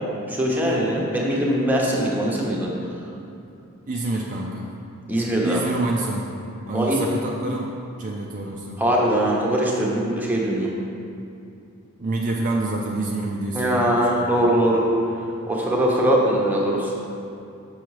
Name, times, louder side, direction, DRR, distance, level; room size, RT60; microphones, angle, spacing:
voice 1, 0.3-2.7 5.1-5.6 6.7-7.0 8.8-10.7 13.5-14.8 15.5-16.9, right 1 dB, 10° right, -3 dB, 0.9 m, -21 dB
voice 2, 3.9-4.7 5.4-6.3 6.7-8.8 12.0-14.5, right 2 dB, 35° right, -1 dB, 0.5 m, -27 dB
6.2 x 6.0 x 4.8 m, 2.6 s
head